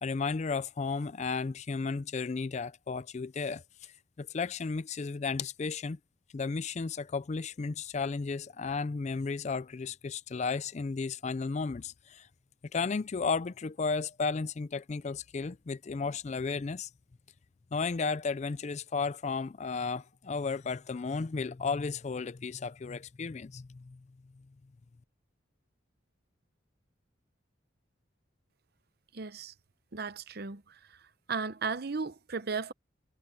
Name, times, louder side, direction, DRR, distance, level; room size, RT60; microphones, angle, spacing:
voice 1, 0.0-3.9 4.2-6.0 6.3-12.3 12.7-16.9 17.7-24.0, left 4 dB, 35° left, 0.4 m, -34 dB
voice 2, 29.1-29.5 29.9-31.0 31.3-32.7, right 4 dB, 55° right, 0.8 m, -35 dB
head